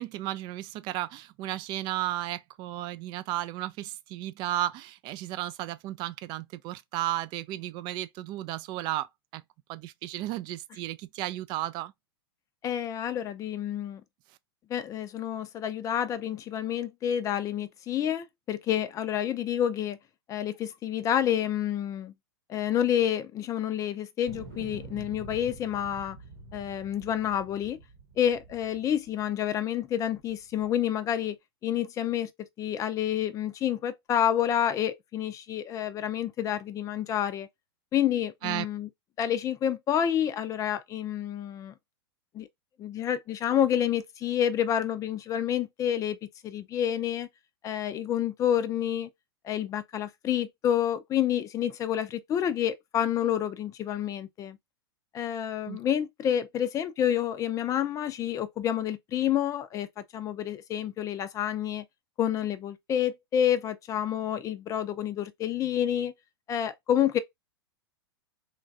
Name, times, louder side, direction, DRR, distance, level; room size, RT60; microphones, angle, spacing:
voice 1, 0.0-9.1 9.3-9.4 9.7-11.9 38.4-38.7 55.7-55.8, right 14 dB, 35° right, 0.3 m, -34 dB
voice 2, 12.6-14.0 14.7-20.0 20.3-22.1 22.5-26.2 26.5-27.8 28.2-31.4 31.6-32.3 32.6-37.5 37.9-38.9 39.2-41.7 42.3-42.5 42.8-46.2 46.4-47.3 47.6-49.1 49.4-54.6 55.1-61.8 62.2-66.1 66.5-67.2, left 10 dB, 25° left, 0.5 m, -29 dB
sound 1, 24.3-29.5 30.0-30.8, right 3 dB, 65° right, 1.0 m, -47 dB
3.1 x 2.3 x 2.5 m
hypercardioid pair, 105°, 13 cm